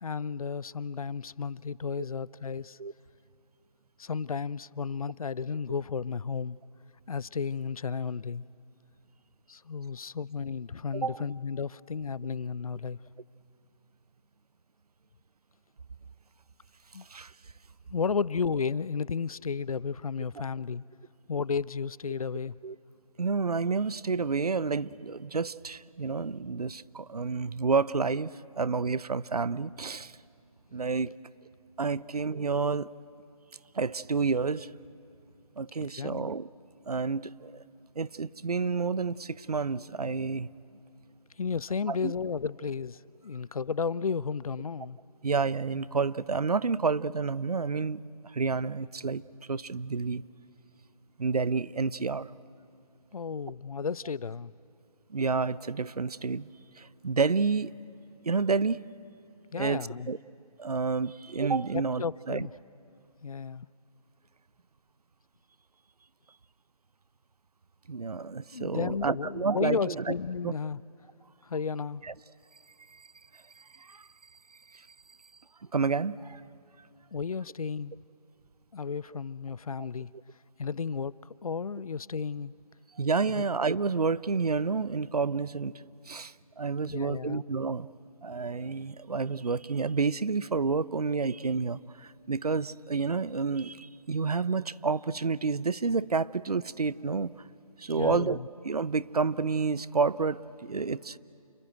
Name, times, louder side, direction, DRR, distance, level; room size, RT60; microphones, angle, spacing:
voice 1, 0.0-2.8 4.0-6.6 7.1-8.5 9.5-13.0 16.9-17.1 17.9-20.8 21.3-22.6 36.0-36.3 41.4-45.0 53.1-54.5 59.5-60.1 61.7-62.5 63.2-63.7 68.5-70.8 71.4-72.0 77.1-77.9 78.7-80.1 80.6-81.1 81.4-82.5 83.3-83.4 86.9-87.4 98.0-98.5, left 5 dB, 65° left, 22 dB, 0.5 m, -33 dB
voice 2, 23.2-30.2 30.7-31.1 31.8-32.9 33.7-34.7 35.6-36.5 36.9-37.6 38.0-40.5 41.9-42.1 45.2-49.2 49.5-50.2 51.2-52.3 55.1-56.5 56.8-57.7 58.2-58.8 59.6-60.2 60.6-62.5 67.9-70.0 70.4-70.5 72.0-72.1 72.9-73.1 73.3-74.1 74.7-74.8 75.7-76.4 79.8-79.9 83.0-85.7 86.1-87.9 88.2-97.3 97.8-98.4 98.6-101.2, right 4 dB, 80° right, 19 dB, 0.7 m, -29 dB
28.5 x 22.0 x 9.1 m, 2.7 s
figure-of-eight pair, 155°, 19 cm